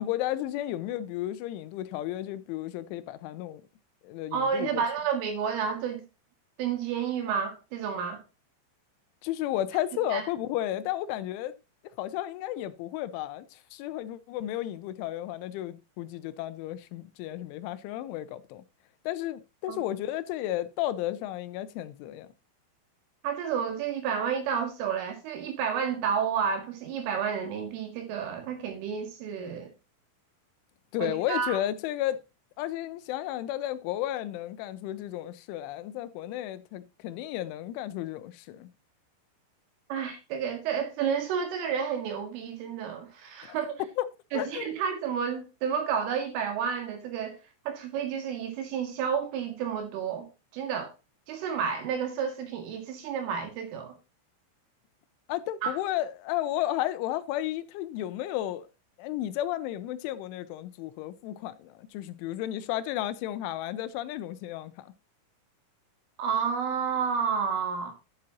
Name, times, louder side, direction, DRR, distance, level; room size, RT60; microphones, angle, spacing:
voice 1, 0.0-3.6 4.0-4.8 9.2-11.6 12.0-18.6 19.1-22.3 30.9-32.2 32.6-38.7 44.0-44.1 44.3-44.7 55.3-58.7 59.0-64.9, left 13 dB, 85° left, 3.0 m, -33 dB
voice 2, 4.3-6.0 6.6-8.2 10.1-10.2 19.7-19.8 23.2-29.7 31.0-31.6 39.9-43.8 44.3-47.4 47.7-50.3 50.5-50.9 51.3-54.0 55.6-55.8 66.2-67.9, right 7 dB, 90° right, 4.5 m, -30 dB
11.5 x 7.6 x 2.9 m
omnidirectional pair, 5.5 m